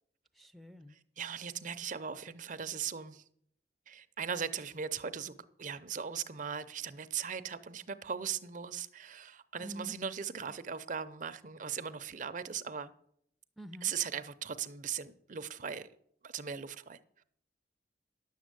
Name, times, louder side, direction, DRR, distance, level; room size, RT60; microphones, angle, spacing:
voice 1, 0.4-1.0 9.6-10.0 13.6-13.9, right 1 dB, ahead, 0.5 m, -47 dB
voice 2, 0.9-3.2 3.9-12.9 13.8-15.9 16.2-17.2, right 7 dB, 45° right, 0.6 m, -39 dB
11.0 x 7.3 x 7.8 m
head